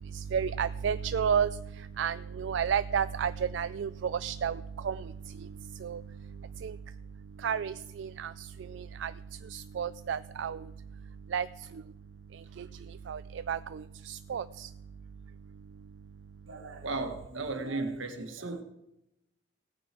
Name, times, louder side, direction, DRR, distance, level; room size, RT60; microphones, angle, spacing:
voice 1, 0.3-1.5 2.0-4.6 4.8-5.0 5.8-6.0 6.6-6.7 7.4-8.3 8.7-9.1 9.5-10.6 11.3-11.5 12.6-12.7 13.1-13.2 13.5-14.7, right 7 dB, 65° right, 0.3 m, -31 dB
voice 2, 16.5-18.6, right 3 dB, 85° right, 1.5 m, -35 dB
17.0 x 9.2 x 4.4 m
head